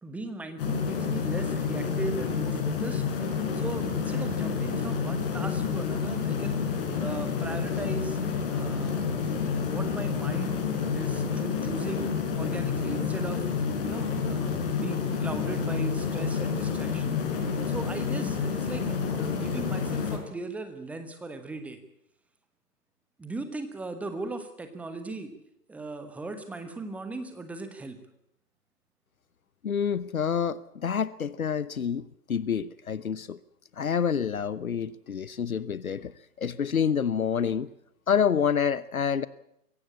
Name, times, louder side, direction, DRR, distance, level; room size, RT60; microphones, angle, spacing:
voice 1, 0.0-3.0 3.5-6.6 7.0-8.2 8.5-10.6 10.9-13.5 13.8-17.2 17.7-21.8 23.2-25.3 25.7-28.0, right 2 dB, 5° right, 9 dB, 1.1 m, -38 dB
sound 1, 0.6-20.2, left 6 dB, 35° left, 5.2 m, -29 dB
voice 2, 29.6-33.4 33.8-36.1 36.4-37.7 38.1-39.3, left 7 dB, 60° left, 18 dB, 0.9 m, -28 dB
23.0 x 16.5 x 8.5 m, 0.79 s
figure-of-eight pair, 125°, 47 cm